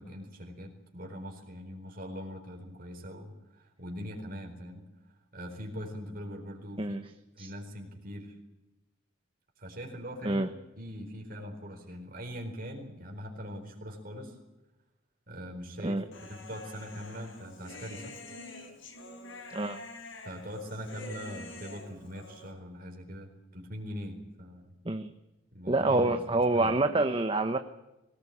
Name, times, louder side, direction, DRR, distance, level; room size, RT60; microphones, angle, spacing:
voice 1, 0.0-4.8 5.3-7.0 7.4-8.4 9.6-10.4 10.8-14.4 15.3-18.2 20.2-24.7 25.5-26.2 26.5-26.7, equal, 45° right, 2 dB, 4.3 m, -42 dB
Human voice, 16.1-22.5, left 2 dB, 85° left, 4.6 m, -46 dB
voice 2, 25.7-27.6, right 2 dB, 25° right, 7 dB, 1.0 m, -27 dB
22.5 x 18.5 x 8.6 m, 0.99 s
head